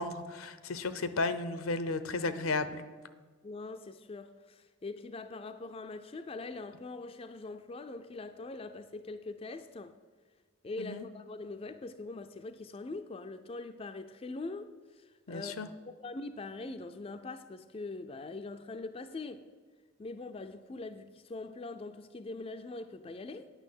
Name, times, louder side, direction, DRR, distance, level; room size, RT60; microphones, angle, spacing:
voice 1, 0.0-2.8 10.8-11.0 15.3-15.7, left 3 dB, 80° left, 0.7 m, -34 dB
voice 2, 3.4-9.9 10.6-14.7 15.0-15.5 16.0-19.4 20.0-23.5, left 3 dB, 25° left, 0.4 m, -42 dB
9.0 x 6.3 x 8.4 m
head